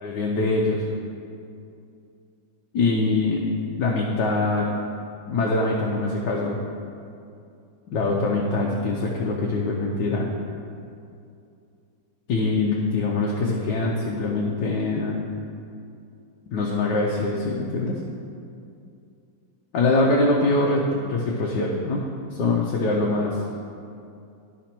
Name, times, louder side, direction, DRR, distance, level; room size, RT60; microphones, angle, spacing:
voice 1, 0.0-0.8 2.7-3.4 3.8-4.7 5.3-6.6 7.9-10.3 12.3-15.2 16.5-18.0 19.7-22.0 22.3-23.4, left 2 dB, 70° left, -2 dB, 1.3 m, -23 dB
11.5 x 5.0 x 4.4 m, 2.5 s
omnidirectional pair, 2.1 m